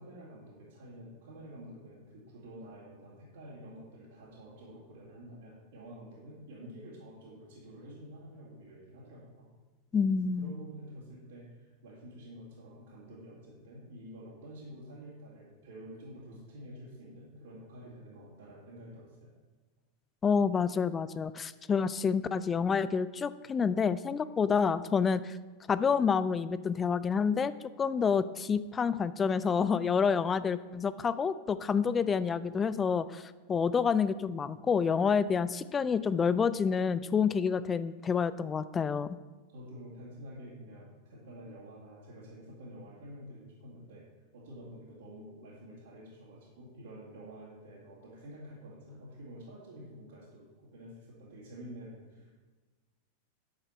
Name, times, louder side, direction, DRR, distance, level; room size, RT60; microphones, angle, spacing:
voice 1, 0.0-9.5 10.4-19.3 28.4-28.5 39.5-44.0 44.3-52.3, equal, 60° right, -9 dB, 2.5 m, -49 dB
voice 2, 9.9-10.5 20.2-25.4 25.7-27.5 27.8-39.1, left 6 dB, 20° left, 15 dB, 0.4 m, -28 dB
9.7 x 6.7 x 4.5 m, 1.3 s
figure-of-eight pair, 90°, 0 cm